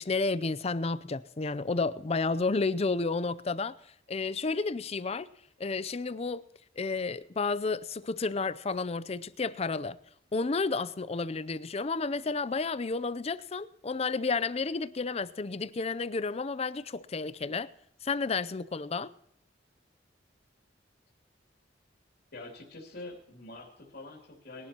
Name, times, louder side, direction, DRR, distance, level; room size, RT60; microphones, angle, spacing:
voice 1, 0.0-3.8 4.1-5.3 5.6-6.5 6.8-10.0 10.3-17.7 18.0-19.1, left 4 dB, 35° left, 0.5 m, -31 dB
voice 2, 22.3-24.7, left 2 dB, 60° left, 2.8 m, -45 dB
21.5 x 11.5 x 2.9 m
head